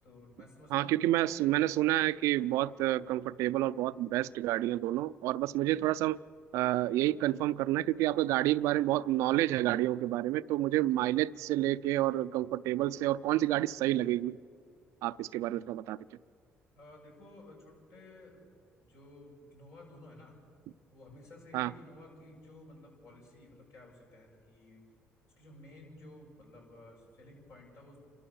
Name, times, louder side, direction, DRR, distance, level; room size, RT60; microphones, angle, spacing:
voice 1, 0.0-1.6 16.7-18.5 18.8-20.4 20.9-24.8 25.2-28.0, left 1 dB, 70° left, 7.6 m, -54 dB
voice 2, 0.7-6.2 6.5-14.4 15.0-16.0 21.5-21.7, right 15 dB, 85° right, 0.4 m, -29 dB
28.5 x 13.0 x 7.0 m
cardioid pair, 80°, 5 cm